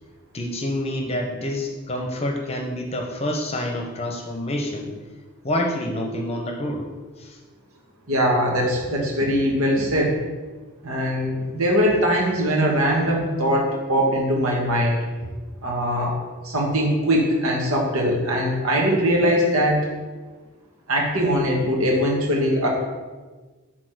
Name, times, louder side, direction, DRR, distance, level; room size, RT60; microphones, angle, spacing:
voice 1, 0.3-4.9 5.4-6.8 7.2-7.4, left 1 dB, 30° left, 1 dB, 0.8 m, -27 dB
voice 2, 8.1-10.2 10.8-15.0 15.6-16.2 16.4-19.8 20.9-22.7, equal, 80° right, -1 dB, 1.8 m, -21 dB
6.5 x 4.2 x 6.4 m, 1.3 s
head